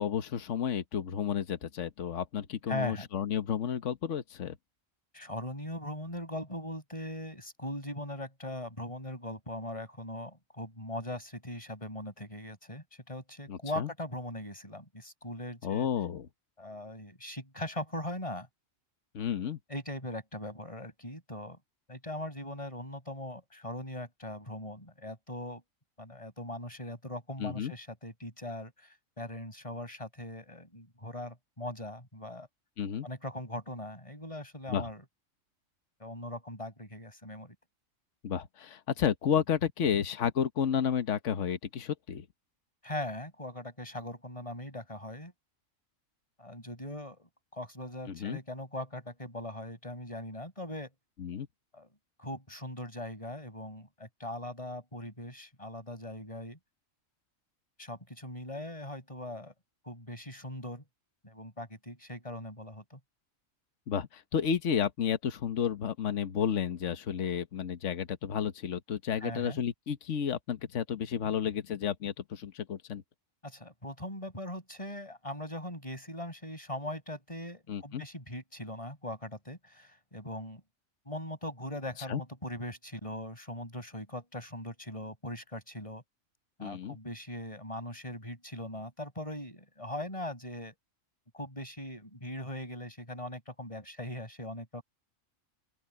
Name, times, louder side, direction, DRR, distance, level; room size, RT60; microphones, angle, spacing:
voice 1, 0.0-4.6 13.5-13.9 15.6-16.3 19.1-19.6 27.4-27.7 32.8-33.1 34.7-34.9 38.2-42.2 48.1-48.4 51.2-51.5 63.9-73.0 77.7-78.0 82.1-82.2 86.6-87.0, left 8 dB, 65° left, 1.4 m, -31 dB
voice 2, 2.7-3.1 5.1-15.9 16.6-18.5 19.7-21.6 21.9-25.6 26.0-32.5 33.0-35.0 36.0-37.5 42.8-45.3 46.4-50.9 51.7-51.9 52.2-56.6 57.8-59.5 59.9-60.8 61.2-63.0 69.2-69.6 73.4-80.6 81.1-86.0 86.6-90.7 91.3-94.8, left 1 dB, 25° left, 6.2 m, -40 dB
open air
omnidirectional pair, 1.4 m